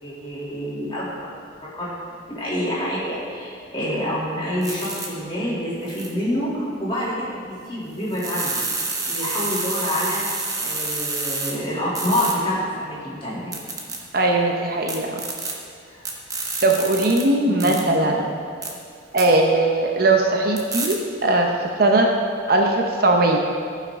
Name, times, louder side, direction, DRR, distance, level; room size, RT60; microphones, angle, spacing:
voice 1, 0.0-1.2 1.6-8.7 9.1-10.2 10.6-13.5 15.9-16.0 17.4-18.2, equal, 25° left, -8 dB, 2.7 m, -27 dB
sound 1, 4.6-5.1 5.9-6.1 8.1-11.5 12.0-12.3 13.5-14.0 14.9-15.5 16.1-17.2 17.6-17.8 18.6-18.7 19.2-19.3 20.6-20.9, right 3 dB, 20° right, 0.9 m, -28 dB
voice 2, 14.1-15.2 16.6-18.3 19.1-22.1 22.5-23.4, right 2 dB, 50° right, 1 dB, 0.8 m, -19 dB
15.0 x 5.8 x 3.6 m, 2.2 s
head